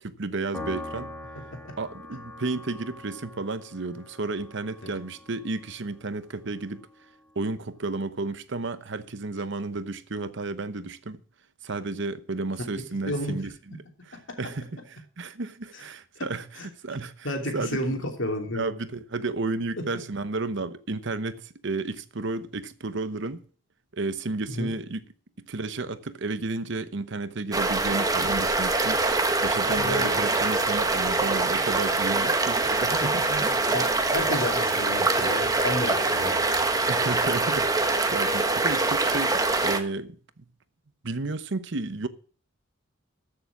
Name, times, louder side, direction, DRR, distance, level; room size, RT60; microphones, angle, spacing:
voice 1, 0.0-1.1 1.8-6.9 7.4-11.2 11.6-13.8 14.1-16.4 16.8-18.0 18.5-23.4 23.9-25.0 25.5-29.0 29.4-33.3 36.9-40.2 41.0-42.1, right 3 dB, 65° right, 0.9 m, -32 dB
Piano, 0.5-7.1, left 2 dB, 5° left, 2.4 m, -43 dB
voice 2, 17.2-18.7 24.5-24.7 29.7-30.3 33.0-33.9 34.1-36.4, left 1 dB, 65° left, 3.1 m, -31 dB
sound 1, 27.5-39.8, right 3 dB, 20° right, 1.2 m, -24 dB
14.0 x 6.9 x 6.1 m
head